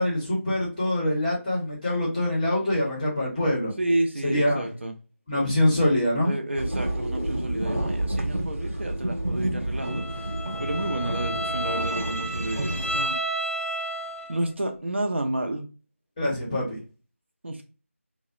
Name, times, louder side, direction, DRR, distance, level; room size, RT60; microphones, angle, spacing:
voice 1, 0.0-3.7 4.2-4.7 5.3-6.3 16.2-16.8, left 1 dB, 10° left, -5 dB, 0.6 m, -24 dB
voice 2, 3.8-4.9 6.2-10.0 10.6-13.2 14.3-15.7 17.4-17.6, right 1 dB, 55° right, 3 dB, 0.5 m, -30 dB
sound 1, 6.6-13.0, right 1 dB, 80° right, 1.0 m, -30 dB
Bowed string instrument, 9.8-14.5, right 1 dB, 65° left, 0.6 m, -31 dB
2.7 x 2.0 x 2.5 m, 0.33 s
figure-of-eight pair, 165°, 8 cm